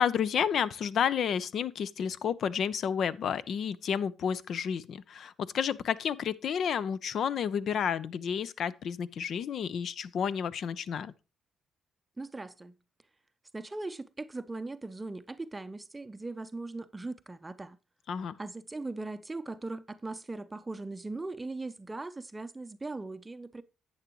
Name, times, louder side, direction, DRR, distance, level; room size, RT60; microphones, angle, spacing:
voice 1, 0.0-11.1 18.1-18.4, left 7 dB, 65° left, 0.5 m, -31 dB
voice 2, 12.2-12.8 13.5-17.8 18.4-23.6, right 2 dB, 15° right, 0.5 m, -39 dB
10.5 x 8.7 x 3.0 m
cardioid pair, 90°, 0 cm